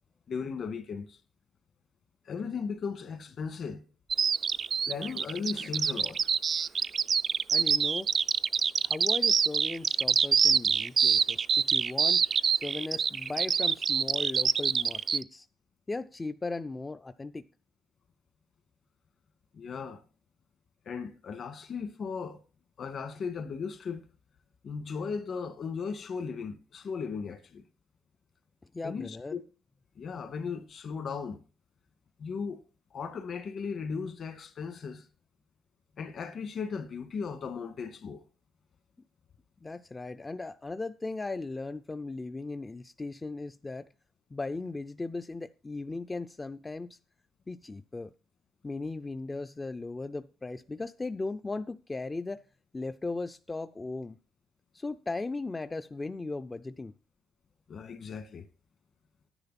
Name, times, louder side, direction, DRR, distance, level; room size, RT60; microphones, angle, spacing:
voice 1, 0.3-1.2 2.2-3.8 4.9-6.3 19.5-20.0 20.9-22.4 22.8-24.1 24.6-27.6 28.8-29.4 30.0-31.4 32.2-32.6 32.9-35.1 36.0-38.2 57.7-58.5, left 5 dB, 60° left, 1.8 m, -36 dB
Bird vocalization bird call bird song, 4.1-15.2, right 6 dB, 50° right, 0.4 m, -25 dB
voice 2, 7.5-8.1 8.8-12.2 12.5-15.5 15.9-17.5 28.7-29.4 39.6-43.9 44.3-47.0 47.5-48.1 48.6-52.4 52.7-54.2 54.7-56.9, left 3 dB, 20° left, 0.5 m, -37 dB
10.5 x 10.0 x 4.2 m
cardioid pair, 90°, 0 cm